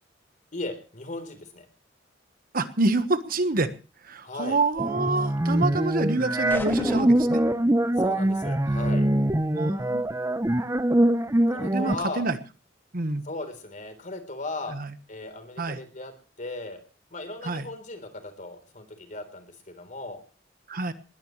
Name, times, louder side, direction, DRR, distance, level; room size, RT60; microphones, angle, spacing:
voice 1, 0.5-1.7 4.2-4.6 8.0-9.0 11.5-12.3 13.2-14.8 15.1-16.1 16.4-16.8 17.1-20.2, left 2 dB, 45° left, 8 dB, 3.7 m, -37 dB
voice 2, 2.5-3.7 4.0-7.4 9.5-10.0 11.7-12.4 12.9-13.2 14.7-14.9 15.6-15.8 17.4-17.7 20.7-20.9, right 2 dB, 50° right, 11 dB, 1.2 m, -27 dB
sound 1, 4.8-11.9, right 1 dB, 15° right, 0.7 m, -23 dB
sound 2, 6.5-7.5, equal, 10° left, 1.7 m, -31 dB
20.5 x 20.0 x 3.2 m, 0.35 s
head